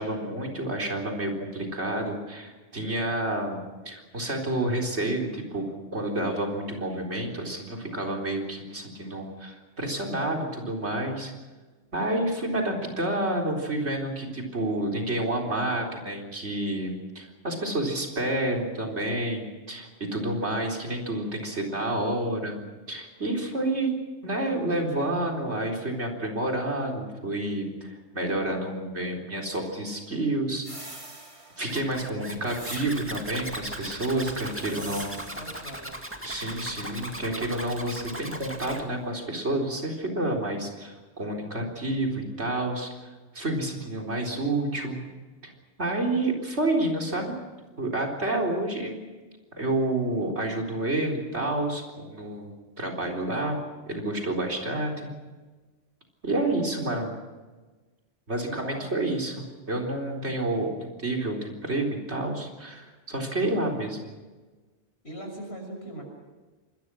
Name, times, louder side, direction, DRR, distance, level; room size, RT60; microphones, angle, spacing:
voice 1, 0.0-5.7 5.9-11.3 11.9-22.6 22.9-23.9 24.2-30.7 31.6-35.1 36.2-45.0 45.4-45.5 45.8-47.3 47.8-49.0 49.5-53.6 53.9-55.1 56.2-57.1 58.3-59.3 59.7-64.0, right 1 dB, 80° right, 1 dB, 4.4 m, -29 dB
sound 1, 30.6-31.8 32.5-33.3 34.3-35.6, right 1 dB, 30° right, 3.2 m, -43 dB
Zipper (clothing), 31.7-38.8, right 1 dB, 10° right, 2.2 m, -38 dB
voice 2, 32.2-32.5 34.6-36.0 58.4-59.1 65.0-66.0, right 1 dB, 70° left, 3 dB, 6.8 m, -41 dB
26.5 x 21.5 x 6.3 m, 1.3 s
omnidirectional pair, 1.1 m